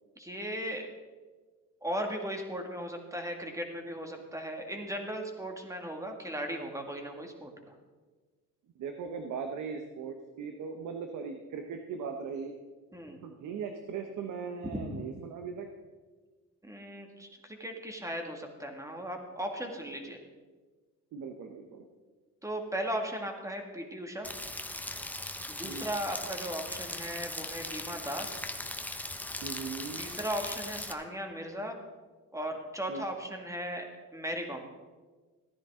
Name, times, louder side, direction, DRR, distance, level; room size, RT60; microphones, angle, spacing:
voice 1, 0.2-0.9 1.8-7.8 12.9-13.2 14.7-14.8 16.6-20.2 22.4-24.3 25.5-28.5 30.0-31.8 32.3-34.7, equal, 10° right, 3 dB, 1.9 m, -37 dB
voice 2, 8.8-12.5 13.2-15.7 21.1-21.8 25.6-25.8 29.4-30.0 32.9-33.0, right 5 dB, 80° right, 5 dB, 1.0 m, -39 dB
Rain, 24.2-30.9, left 1 dB, 5° left, 0.8 m, -39 dB
15.0 x 10.0 x 3.7 m, 1.4 s
cardioid pair, 90°, 30 cm